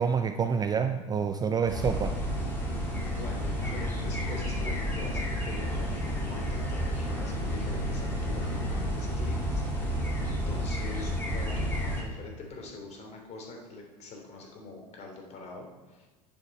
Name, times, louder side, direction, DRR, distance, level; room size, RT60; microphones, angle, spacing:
voice 1, 0.0-2.1, right 6 dB, 20° right, 8 dB, 0.5 m, -27 dB
sound 1, 1.7-12.0, equal, 10° left, 4.0 m, -31 dB
voice 2, 3.0-16.1, left 3 dB, 35° left, 1 dB, 3.2 m, -44 dB
9.7 x 7.3 x 5.5 m, 1.2 s
figure-of-eight pair, 85°, 21 cm